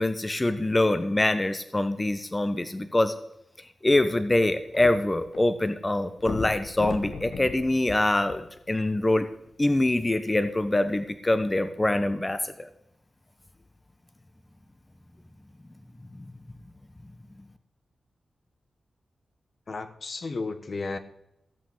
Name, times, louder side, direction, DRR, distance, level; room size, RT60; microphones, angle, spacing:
voice 1, 0.0-3.1 3.8-9.3 9.6-12.7 16.2-16.3, left 1 dB, 20° left, 10 dB, 1.1 m, -24 dB
sound 1, 4.0-5.4 5.7-5.8 6.2-8.8 9.5-9.6, left 4 dB, 85° left, 1.8 m, -37 dB
voice 2, 19.7-21.0, left 3 dB, 55° left, 9 dB, 1.3 m, -33 dB
17.0 x 6.0 x 7.9 m, 0.82 s
cardioid pair, 65°, 0 cm